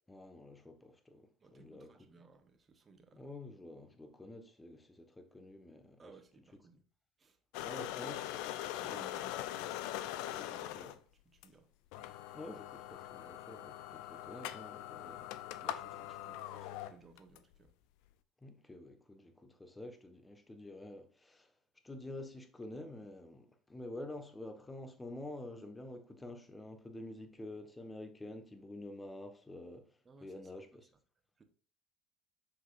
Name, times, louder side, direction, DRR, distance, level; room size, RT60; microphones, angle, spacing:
voice 1, 0.1-2.1 3.1-6.1 7.6-8.3 10.5-10.9 12.3-15.3 18.4-21.5 21.8-29.9 30.2-30.9, left 1 dB, 15° left, 1.3 m, -48 dB
voice 2, 1.4-3.3 6.0-6.8 7.2-7.4 8.8-11.7 15.6-17.7 30.0-30.8 31.4-31.5, right 4 dB, 30° right, 1.4 m, -60 dB
sound 1, 7.5-11.0 11.4-11.5 11.9-17.4, left 13 dB, 65° left, 0.5 m, -42 dB
7.4 x 6.4 x 2.5 m
figure-of-eight pair, 65°, 0 cm